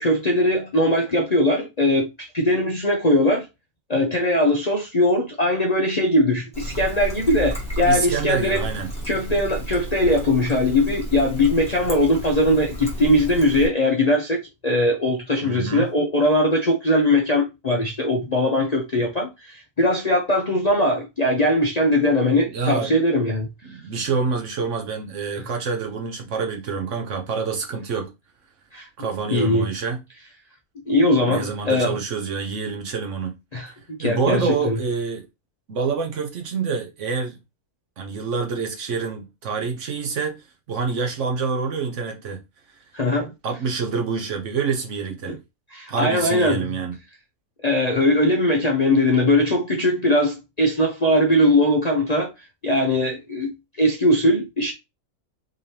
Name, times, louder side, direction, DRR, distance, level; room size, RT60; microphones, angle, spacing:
voice 1, 0.0-2.1 2.3-3.5 3.9-8.7 9.1-23.5 28.7-28.9 29.3-29.7 30.9-32.0 33.5-33.7 34.0-34.7 42.9-43.3 45.7-46.6 47.6-52.3 52.6-53.5 53.8-54.7, left 1 dB, 40° left, 0.6 m, -20 dB
Trickle dribble, 6.5-13.7, equal, 5° left, 1.4 m, -32 dB
voice 2, 7.9-8.9 15.4-15.9 22.5-22.9 23.6-28.1 29.0-30.0 31.3-33.4 33.7-35.3 35.7-37.4 38.0-42.4 43.4-45.4 45.9-47.0, right 5 dB, 60° right, 1.0 m, -27 dB
3.8 x 3.3 x 2.8 m
omnidirectional pair, 1.6 m